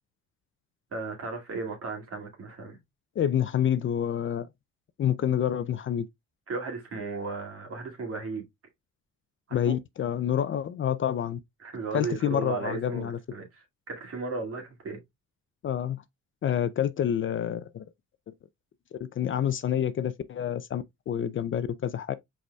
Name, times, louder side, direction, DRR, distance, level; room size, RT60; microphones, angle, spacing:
voice 1, 0.9-2.8 6.5-8.5 9.5-9.8 11.6-13.5 13.9-15.0, right 4 dB, 50° right, 2.2 m, -35 dB
voice 2, 3.2-4.5 5.0-6.1 9.5-11.4 11.9-13.2 15.6-16.0 16.4-17.9 18.3-18.4 18.9-22.1, left 9 dB, 40° left, 0.4 m, -28 dB
5.0 x 4.7 x 2.2 m
cardioid pair, 90°, 30 cm